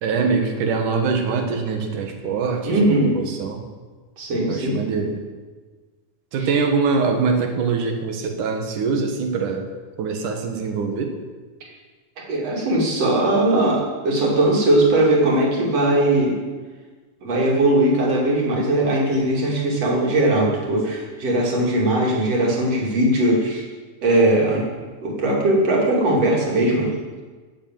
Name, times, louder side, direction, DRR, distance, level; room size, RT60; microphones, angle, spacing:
voice 1, 0.0-3.6 4.5-5.2 6.3-9.7 10.0-11.1, right 4 dB, 80° right, 4 dB, 3.2 m, -23 dB
voice 2, 2.2-3.1 4.2-4.8 6.4-6.5 12.3-16.3 17.2-23.7 24.0-24.7 25.0-27.0, right 1 dB, 55° right, -2 dB, 4.0 m, -19 dB
16.5 x 8.1 x 7.8 m, 1.4 s
omnidirectional pair, 3.5 m